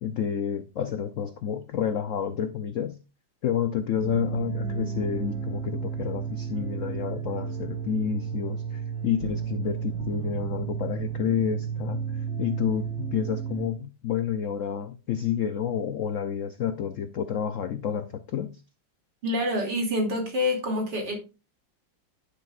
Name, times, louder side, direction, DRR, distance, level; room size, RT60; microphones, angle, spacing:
voice 1, 0.0-3.0 3.4-18.6, left 8 dB, 80° left, 0.7 m, -30 dB
sound 1, 4.0-13.7, right 7 dB, 35° right, 3.3 m, -32 dB
voice 2, 19.2-21.2, left 1 dB, 60° right, 3.3 m, -26 dB
10.0 x 9.0 x 2.5 m
omnidirectional pair, 2.1 m